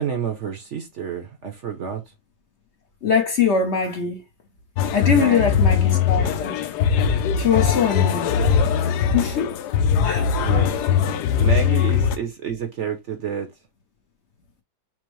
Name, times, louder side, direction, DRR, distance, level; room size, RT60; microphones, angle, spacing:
voice 1, 0.0-2.0 5.1-5.7 10.4-10.7 11.3-13.5, right 7 dB, 55° right, 0.9 m, -29 dB
voice 2, 3.0-4.2 4.9-6.5 7.4-8.3 9.1-9.5 10.0-10.3, left 6 dB, 50° left, 1.0 m, -22 dB
sound 1, 4.8-12.2, left 7 dB, 85° left, 1.2 m, -20 dB
6.1 x 2.1 x 3.1 m
omnidirectional pair, 1.7 m